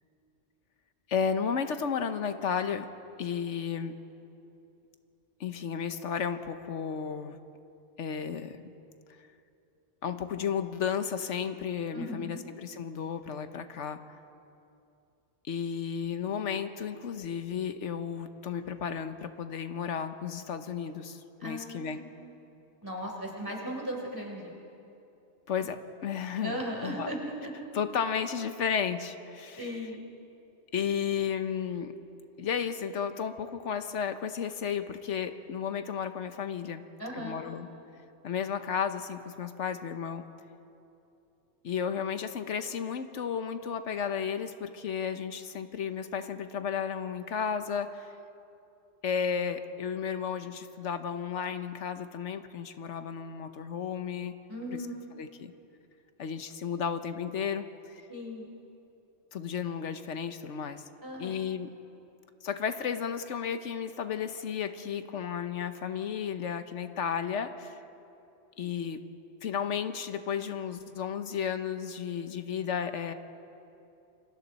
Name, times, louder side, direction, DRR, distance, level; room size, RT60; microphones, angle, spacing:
voice 1, 1.1-2.9 3.2-4.0 5.4-7.4 8.0-8.6 10.0-14.2 15.5-22.0 25.5-26.6 26.8-27.1 27.7-29.8 30.7-32.0 32.4-36.8 37.1-37.7 38.2-40.3 41.6-48.1 49.0-54.4 55.2-55.5 56.2-58.0 59.3-60.8 61.2-61.8 62.4-67.8 68.6-69.0 69.4-73.1, left 7 dB, 85° left, 9 dB, 1.3 m, -33 dB
voice 2, 11.9-12.4 21.4-22.3 22.8-24.5 26.4-27.7 29.6-30.0 37.0-37.4 54.5-55.0 58.1-58.5 61.0-61.5, equal, 20° right, -1 dB, 3.9 m, -37 dB
28.5 x 26.0 x 4.2 m, 2.8 s
omnidirectional pair, 1.2 m